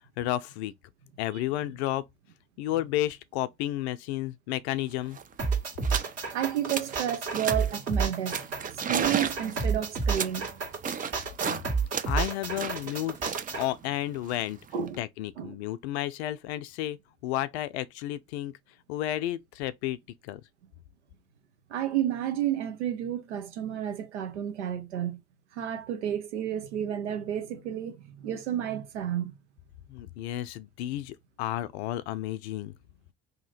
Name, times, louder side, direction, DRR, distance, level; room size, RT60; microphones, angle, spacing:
voice 1, 0.2-0.7 1.2-2.1 2.6-5.2 11.4-11.6 12.1-13.2 13.5-14.6 15.0-18.6 18.9-20.0 20.2-20.4 29.9-32.7, left 14 dB, 70° left, 0.5 m, -32 dB
sound 1, 4.8-4.9 5.1-5.3 5.8-6.1 6.5-7.0 7.3-7.8 8.3-11.6 11.9-15.0, right 7 dB, 25° right, 0.5 m, -34 dB
sound 2, 5.4-13.7, right 5 dB, 45° right, 1.5 m, -30 dB
voice 2, 6.3-10.6 14.7-15.0 15.4-15.6 21.7-25.2 25.5-29.3, right 10 dB, 80° right, 0.8 m, -31 dB
2.9 x 2.7 x 3.9 m
hypercardioid pair, 60°, 34 cm